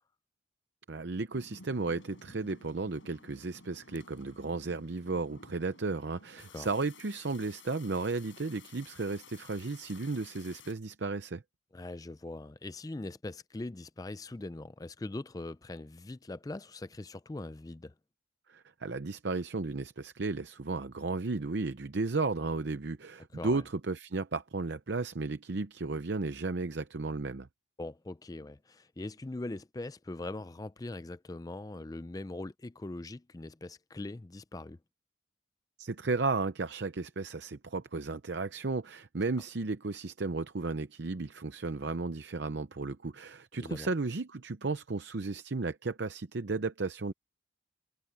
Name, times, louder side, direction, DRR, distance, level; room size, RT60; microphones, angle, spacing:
voice 1, 0.9-11.4 18.5-27.5 35.8-47.1, right 3 dB, 60° right, 0.7 m, -34 dB
July hard rain, 1.3-10.7, left 4 dB, 80° left, 6.5 m, -55 dB
voice 2, 11.7-17.9 23.3-23.6 27.8-34.8 43.6-43.9, left 2 dB, 20° left, 0.4 m, -41 dB
head